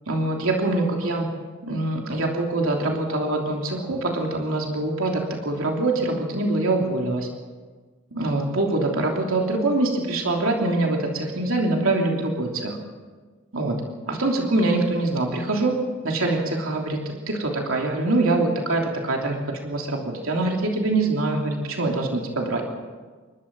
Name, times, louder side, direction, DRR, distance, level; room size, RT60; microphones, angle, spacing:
voice 1, 0.1-1.3 1.6-7.3 8.1-12.8 13.5-13.8 14.1-15.7 16.0-17.0 17.3-22.6, right 2 dB, 85° right, 0 dB, 3.2 m, -24 dB
28.0 x 13.0 x 7.7 m, 1.4 s
head